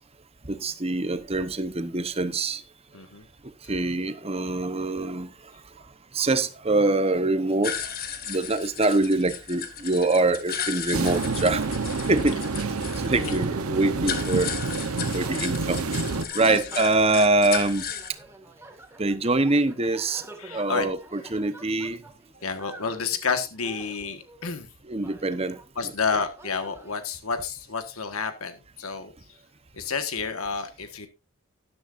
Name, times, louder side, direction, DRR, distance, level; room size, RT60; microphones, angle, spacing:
voice 1, 0.5-2.6 3.7-5.3 6.1-7.9 8.3-11.7 12.1-12.4 13.0-14.6 15.1-15.8 16.3-17.9 19.0-20.3 20.5-22.0 24.9-25.9, right 2 dB, 30° right, 0.9 m, -24 dB
voice 2, 2.9-3.2 13.2-13.3 16.5-16.6 20.4-20.9 22.3-24.7 25.8-29.1 29.7-31.1, left 5 dB, 80° left, 1.5 m, -30 dB
sound 1, 7.6-18.1, left 8 dB, 45° left, 1.8 m, -35 dB
sound 2, 10.9-16.3, right 3 dB, 90° right, 1.0 m, -28 dB
sound 3, 14.9-25.7 26.0-27.0, right 2 dB, 10° right, 1.9 m, -49 dB
13.0 x 12.5 x 2.6 m
head